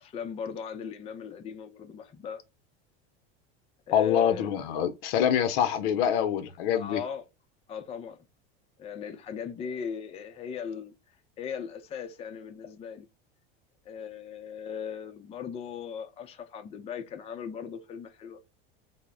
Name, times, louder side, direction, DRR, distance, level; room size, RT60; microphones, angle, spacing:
voice 1, 0.0-2.4 3.9-4.5 6.7-7.2 7.7-8.2 8.8-10.9 11.4-13.1 13.9-18.4, left 7 dB, 20° left, 0.4 m, -38 dB
voice 2, 3.9-7.0, left 9 dB, 70° left, 0.6 m, -25 dB
2.0 x 2.0 x 3.5 m
hypercardioid pair, 95°, 31 cm